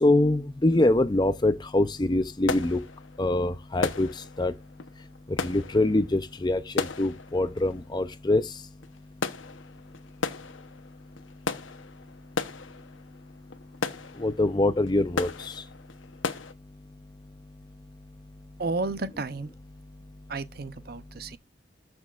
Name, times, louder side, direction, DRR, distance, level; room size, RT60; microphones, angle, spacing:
voice 1, 0.0-2.8 3.2-4.1 4.4-4.5 5.4-8.4 14.2-15.3, left 2 dB, 25° left, 0.5 m, -24 dB
sound 1, 1.4-1.6 1.9-16.5, left 4 dB, 90° left, 1.0 m, -36 dB
voice 2, 18.6-19.5 20.3-21.4, right 3 dB, 50° right, 0.7 m, -32 dB
13.5 x 6.2 x 2.5 m
head